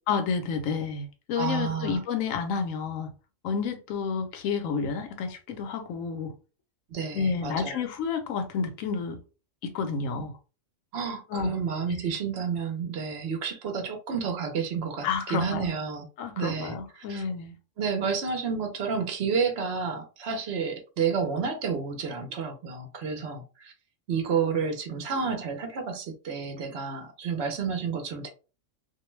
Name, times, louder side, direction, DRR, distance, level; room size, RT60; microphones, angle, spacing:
voice 1, 0.1-3.1 3.4-6.3 7.1-9.2 9.7-10.3 11.3-11.6 11.9-12.2 15.0-15.7 16.2-17.5, left 5 dB, 90° left, 1.0 m, -30 dB
voice 2, 1.4-2.0 6.9-7.8 10.9-16.1 16.4-17.2 17.8-23.7 24.1-28.3, right 6 dB, 60° right, 0.8 m, -30 dB
2.5 x 2.1 x 3.0 m
omnidirectional pair, 1.3 m